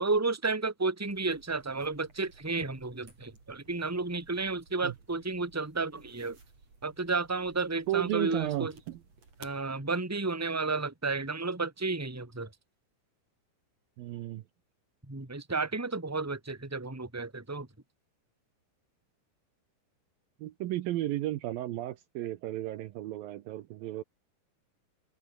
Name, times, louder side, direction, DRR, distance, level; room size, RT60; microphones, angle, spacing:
voice 1, 0.0-6.4 6.8-8.7 9.4-12.5 15.1-17.7, right 3 dB, 5° right, 2.5 m, -32 dB
sound 1, 1.1-9.6, right 4 dB, 40° right, 6.7 m, -57 dB
voice 2, 7.9-9.0 14.0-14.4 20.4-24.0, right 14 dB, 75° right, 2.5 m, -33 dB
omnidirectional pair, 4.6 m